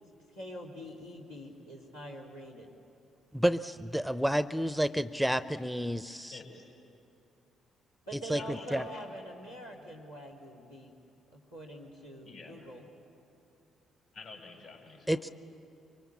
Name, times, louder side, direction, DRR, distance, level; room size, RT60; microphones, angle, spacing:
voice 1, 0.3-2.7 8.1-10.9 11.3-12.8, equal, 80° left, -6 dB, 2.5 m, -45 dB
voice 2, 3.3-6.3 8.3-8.8 15.1-15.3, equal, ahead, 14 dB, 0.6 m, -30 dB
voice 3, 6.3-6.7 8.3-9.1 9.5-9.9 12.2-12.8 14.1-15.3, left 3 dB, 60° left, 1 dB, 5.5 m, -49 dB
25.0 x 24.5 x 8.5 m, 2.6 s
figure-of-eight pair, 45°, 0 cm